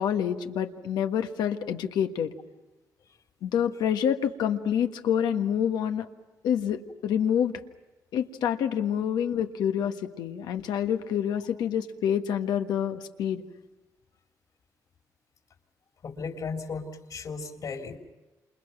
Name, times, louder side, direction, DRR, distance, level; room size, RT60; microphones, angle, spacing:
voice 1, 0.0-2.3 3.4-6.1 6.4-7.5 8.1-13.4, left 9 dB, 85° left, 6 dB, 1.5 m, -27 dB
voice 2, 16.0-18.0, left 4 dB, 60° left, 3 dB, 3.6 m, -35 dB
28.5 x 28.0 x 6.0 m, 1.1 s
cardioid pair, 80°, 7 cm